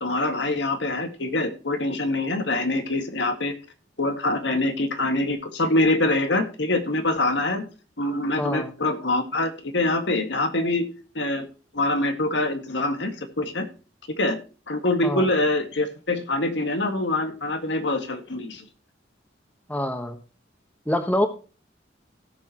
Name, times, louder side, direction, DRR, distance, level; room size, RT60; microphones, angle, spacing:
voice 1, 0.0-3.5 4.0-7.7 8.0-10.9 11.2-11.5 11.7-13.7 14.2-14.4 14.7-18.7, left 2 dB, 75° left, 7 dB, 1.9 m, -24 dB
voice 2, 8.4-8.7 15.0-15.2 19.7-20.2 20.9-21.3, left 1 dB, 10° left, 7 dB, 1.2 m, -25 dB
17.0 x 7.0 x 3.0 m, 0.35 s
head